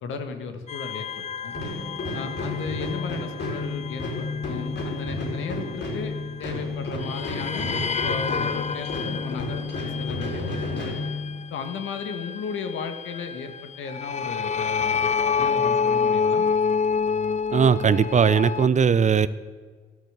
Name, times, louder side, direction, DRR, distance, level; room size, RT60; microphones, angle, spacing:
voice 1, 0.0-1.6 2.1-6.1 6.4-7.7 8.0-11.0 11.5-15.1 15.4-16.4, left 5 dB, 80° left, 7 dB, 1.8 m, -35 dB
sound 1, 0.7-6.6 7.0-18.7, left 6 dB, 35° left, 0.6 m, -29 dB
sound 2, 1.5-11.7, left 2 dB, 65° left, 4.9 m, -31 dB
voice 2, 17.5-19.3, right 6 dB, 35° right, 16 dB, 0.6 m, -19 dB
13.0 x 12.5 x 8.1 m, 1.5 s
cardioid pair, 90°, 20 cm